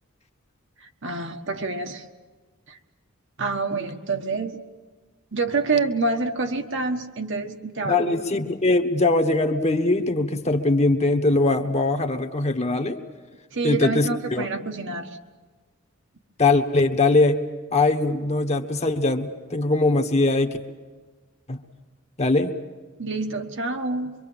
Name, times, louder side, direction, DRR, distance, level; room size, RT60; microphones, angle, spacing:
voice 1, 1.0-2.0 2.7-2.8 3.4-4.6 5.3-8.2 13.5-15.1 23.0-24.1, right 3 dB, 60° right, 5 dB, 1.5 m, -27 dB
voice 2, 7.8-13.0 13.6-14.5 16.4-17.4 17.7-20.6 21.5-21.6 22.2-22.5, left 2 dB, 30° left, 7 dB, 1.3 m, -21 dB
24.5 x 24.0 x 7.4 m, 1.4 s
head